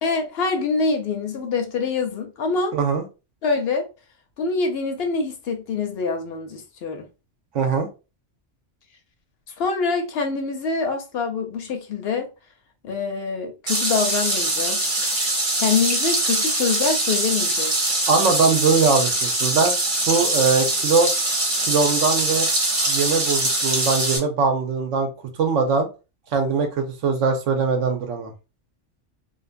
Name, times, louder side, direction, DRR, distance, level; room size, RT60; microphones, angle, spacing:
voice 1, 0.0-2.8 3.4-3.9 4.4-7.1 9.6-12.3 12.8-15.0 15.5-17.9, left 4 dB, 65° left, 0.7 m, -25 dB
voice 2, 2.7-3.0 7.5-7.9 18.1-19.7 20.1-21.1 21.6-22.5 22.9-25.1 25.4-25.9 26.3-28.3, right 4 dB, 85° right, 1.0 m, -21 dB
sound 1, 13.7-24.2, right 2 dB, 45° right, 0.9 m, -23 dB
2.6 x 2.4 x 2.5 m
omnidirectional pair, 1.2 m